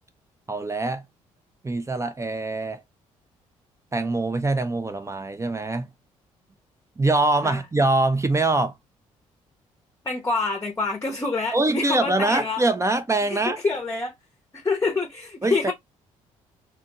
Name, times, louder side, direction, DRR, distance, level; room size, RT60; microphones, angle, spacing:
voice 1, 0.5-1.0 1.6-2.8 3.9-5.9 7.0-8.7 11.5-13.6 15.4-15.7, right 2 dB, 15° right, 0.5 m, -23 dB
voice 2, 10.0-12.6 13.2-14.1 14.5-15.7, left 3 dB, 15° left, 0.8 m, -26 dB
2.8 x 2.2 x 2.8 m
figure-of-eight pair, 45°, 17 cm